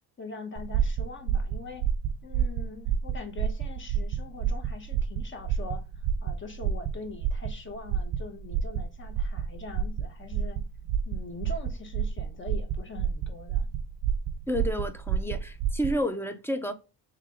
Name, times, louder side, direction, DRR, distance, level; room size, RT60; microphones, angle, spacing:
voice 1, 0.2-1.9 2.2-10.6 11.0-13.7, left 3 dB, 25° left, 1.0 m, -42 dB
sound 1, 0.6-16.0, right 7 dB, 50° right, 0.8 m, -29 dB
voice 2, 14.5-16.7, equal, 5° left, 0.3 m, -30 dB
3.6 x 3.2 x 3.6 m
cardioid pair, 120°, 43 cm